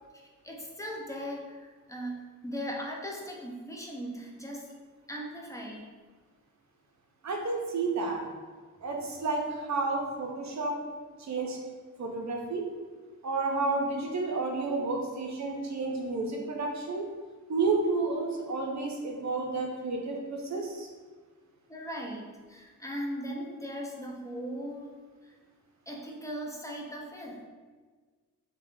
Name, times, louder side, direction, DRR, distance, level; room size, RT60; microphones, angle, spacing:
voice 1, 0.4-2.2 2.4-4.7 5.1-5.9 21.7-24.9 25.2-25.3 25.9-27.5, equal, 10° left, -1 dB, 0.4 m, -38 dB
voice 2, 7.2-8.2 8.8-10.8 11.2-11.6 12.0-12.7 13.2-17.1 17.5-20.9, right 3 dB, 55° right, 0 dB, 0.6 m, -31 dB
3.4 x 2.2 x 2.6 m, 1.4 s
wide cardioid pair, 95°, 34 cm